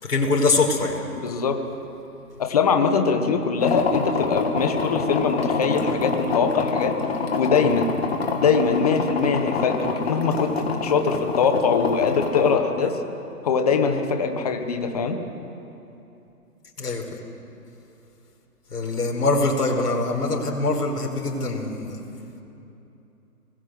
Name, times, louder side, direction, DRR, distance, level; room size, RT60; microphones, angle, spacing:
voice 1, 0.0-1.0 16.8-17.1 18.7-22.0, left 3 dB, 75° left, 0 dB, 4.9 m, -23 dB
voice 2, 1.2-1.6 2.4-6.9 7.4-8.0 8.3-13.0 13.4-15.2, left 5 dB, 25° left, 6 dB, 1.4 m, -22 dB
sound 1, 3.6-12.6, left 4 dB, 40° left, 2.6 m, -26 dB
24.5 x 20.0 x 8.0 m, 2.8 s
hypercardioid pair, 170°, 47 cm